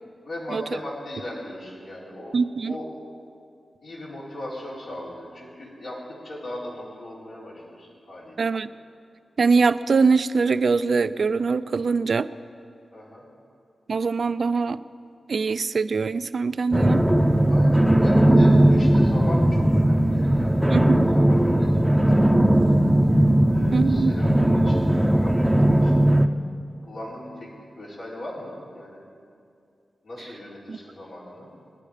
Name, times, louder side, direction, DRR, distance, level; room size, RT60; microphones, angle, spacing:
voice 1, 0.2-2.4 2.6-2.9 3.8-8.5 12.9-13.3 17.5-20.7 21.1-22.9 23.5-26.0 26.8-29.0 30.0-31.5, left 1 dB, 80° left, -7 dB, 4.1 m, -38 dB
voice 2, 2.3-2.7 8.4-8.7 9.4-12.3 13.9-14.8 15.3-17.0 20.7-21.1 23.7-24.1 30.7-30.8, right 4 dB, 65° right, 14 dB, 0.4 m, -22 dB
sound 1, 16.7-26.3, right 1 dB, 5° right, 0.8 m, -18 dB
22.0 x 10.5 x 5.0 m, 2.4 s
cardioid pair, 55°, 0 cm